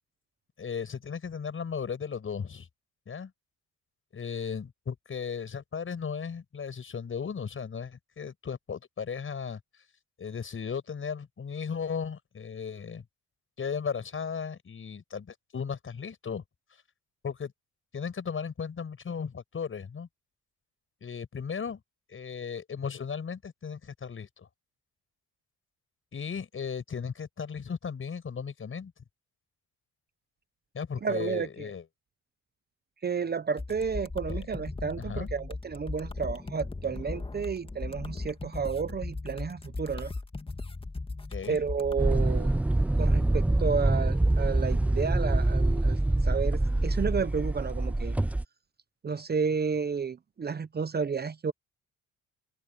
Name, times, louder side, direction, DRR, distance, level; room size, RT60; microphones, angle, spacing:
voice 1, 0.6-2.7 3.1-3.3 4.1-9.6 10.2-13.0 13.6-16.4 17.2-17.5 17.9-20.1 21.0-21.8 22.1-24.5 26.1-28.9 30.7-31.8 34.3-34.4 35.0-35.3 41.3-41.6, left 6 dB, 45° left, 6.1 m, -36 dB
voice 2, 31.0-31.7 33.0-40.1 41.5-42.6 43.0-48.2 49.0-51.5, right 5 dB, 30° right, 1.0 m, -31 dB
sound 1, 33.6-42.0, left 3 dB, 20° left, 1.9 m, -38 dB
sound 2, 42.0-48.5, right 2 dB, 5° right, 0.3 m, -25 dB
open air
cardioid pair, 90°, 30 cm